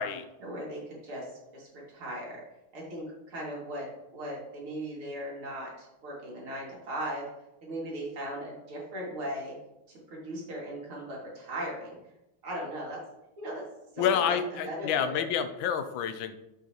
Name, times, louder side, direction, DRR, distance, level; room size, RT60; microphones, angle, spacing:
voice 1, 0.4-2.4 2.7-7.2 7.6-9.5 10.1-12.0 12.4-13.0 13.4-13.6 13.9-15.2, right 1 dB, 75° right, -4 dB, 3.2 m, -38 dB
voice 2, 14.0-16.4, left 8 dB, 70° left, 9 dB, 1.3 m, -28 dB
8.2 x 7.4 x 2.9 m, 0.91 s
omnidirectional pair, 2.4 m